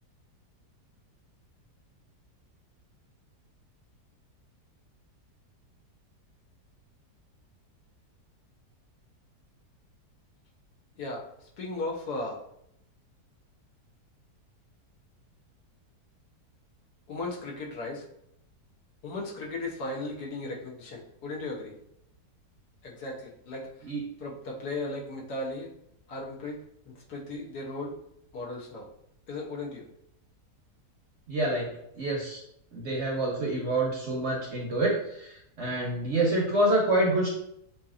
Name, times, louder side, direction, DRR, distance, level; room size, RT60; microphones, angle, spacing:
voice 1, 11.6-12.4 17.1-18.0 19.0-21.8 22.8-23.9 24.2-25.7 26.1-26.6 27.1-28.0 28.3-28.9 29.3-29.9, left 2 dB, 70° left, -2 dB, 1.4 m, -36 dB
voice 2, 31.3-31.7 32.0-32.4 32.7-34.9 35.6-37.3, right 1 dB, 50° right, -2 dB, 1.0 m, -26 dB
6.6 x 2.8 x 2.4 m, 0.74 s
omnidirectional pair, 1.8 m